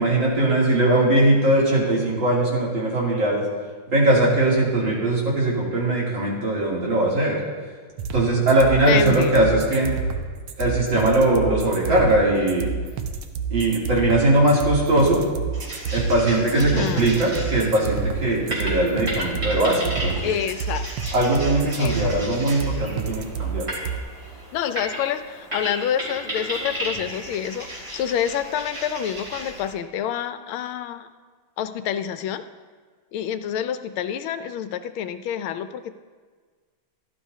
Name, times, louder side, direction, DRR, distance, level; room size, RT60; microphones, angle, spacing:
voice 1, 0.0-3.4 3.9-7.4 8.1-9.9 10.6-12.7 13.5-15.2 15.9-20.3 21.1-23.6, right 1 dB, 60° right, -5 dB, 3.5 m, -20 dB
sound 1, 8.0-24.0, right 5 dB, 80° right, 1.6 m, -29 dB
voice 2, 8.8-9.3 16.5-17.1 20.2-21.1 21.8-22.1 24.5-31.1 31.6-32.4 33.1-35.9, left 9 dB, 80° left, 10 dB, 1.4 m, -27 dB
sound 2, 15.5-29.7, equal, 40° right, 4.0 m, -34 dB
16.5 x 12.5 x 2.7 m, 1.5 s
omnidirectional pair, 2.3 m